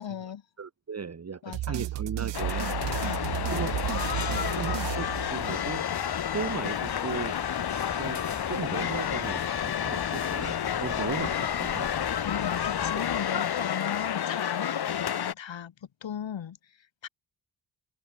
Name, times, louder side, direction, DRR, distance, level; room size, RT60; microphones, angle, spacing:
voice 1, 0.0-0.4 1.4-1.9 3.0-3.5 12.2-15.7 16.0-16.7 17.0-17.1, left 9 dB, 70° left, 5.3 m, -37 dB
voice 2, 0.6-2.8 3.5-3.7 4.6-5.9 6.3-7.4 8.0-11.9 13.3-13.4, right 6 dB, 35° right, 1.4 m, -37 dB
sound 1, 1.5-5.8, right 15 dB, 65° right, 0.6 m, -33 dB
sound 2, 2.3-15.3, left 9 dB, 55° left, 1.2 m, -30 dB
sound 3, 2.7-13.5, left 6 dB, 35° left, 1.4 m, -40 dB
cardioid pair, 60°, 46 cm